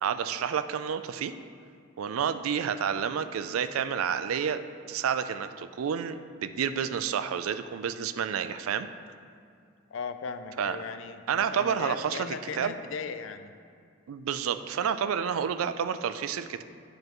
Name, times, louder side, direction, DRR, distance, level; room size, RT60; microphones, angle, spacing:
voice 1, 0.0-1.3 2.0-8.9 10.6-10.8 11.3-12.7 14.1-16.6, right 7 dB, 80° right, 11 dB, 0.3 m, -30 dB
voice 2, 9.9-13.5, left 5 dB, 65° left, 9 dB, 0.4 m, -37 dB
9.6 x 5.1 x 3.0 m, 2.3 s
head